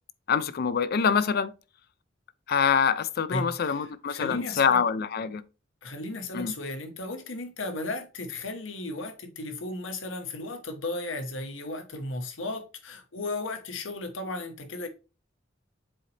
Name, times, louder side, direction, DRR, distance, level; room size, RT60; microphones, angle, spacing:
voice 1, 0.3-1.5 2.5-5.4 6.3-6.5, left 6 dB, 55° left, 0.4 m, -25 dB
voice 2, 3.3-4.8 5.8-14.9, left 2 dB, 80° left, 1.1 m, -35 dB
7.6 x 4.0 x 3.3 m
head